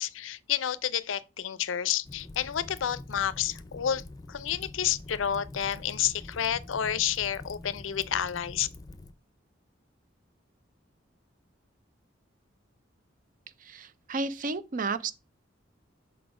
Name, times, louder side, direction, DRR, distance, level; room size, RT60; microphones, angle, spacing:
voice 1, 0.0-8.7, left 9 dB, 85° left, 0.5 m, -30 dB
Fire, 2.0-9.1, left 2 dB, 20° left, 0.4 m, -45 dB
voice 2, 13.6-15.1, right 3 dB, 45° right, 0.5 m, -32 dB
5.7 x 4.1 x 4.8 m
head